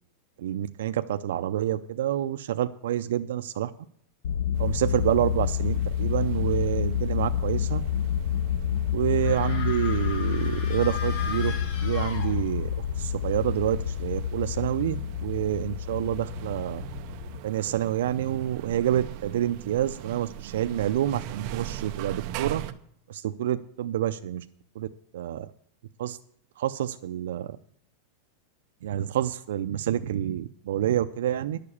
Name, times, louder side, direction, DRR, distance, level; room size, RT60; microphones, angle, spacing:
voice 1, 0.4-3.7 4.6-7.8 8.9-11.6 11.8-12.7 13.0-16.8 17.4-22.6 23.1-24.4 24.8-24.9 25.1-25.5 26.0-26.2 26.6-27.6 28.8-31.6, right 11 dB, 75° right, 10 dB, 0.5 m, -28 dB
sound 1, 4.2-17.4, left 9 dB, 80° left, 0.6 m, -29 dB
sound 2, 4.6-22.7, right 12 dB, 35° right, 0.7 m, -42 dB
sound 3, 9.2-12.8, left 6 dB, 45° left, 1.7 m, -38 dB
11.0 x 6.7 x 8.5 m, 0.66 s
supercardioid pair, 180°, 0 cm